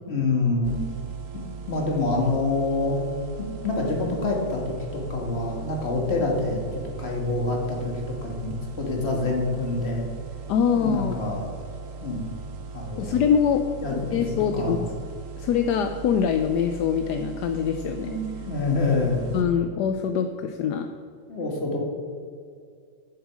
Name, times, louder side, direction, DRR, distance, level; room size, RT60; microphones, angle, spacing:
voice 1, 0.1-0.8 1.3-3.0 3.4-10.0 10.7-11.5 12.0-12.3 12.7-13.3 13.8-14.2 14.5-14.8 18.0-19.2 21.3-21.8, left 3 dB, 35° left, 0 dB, 1.9 m, -26 dB
sound 1, 0.6-19.4, right 4 dB, 55° right, 1.1 m, -39 dB
voice 2, 10.5-11.2 13.0-13.6 13.9-14.9 15.4-18.1 19.3-20.9, left 7 dB, 75° left, 7 dB, 1.1 m, -24 dB
10.5 x 7.4 x 4.8 m, 2.2 s
omnidirectional pair, 1.9 m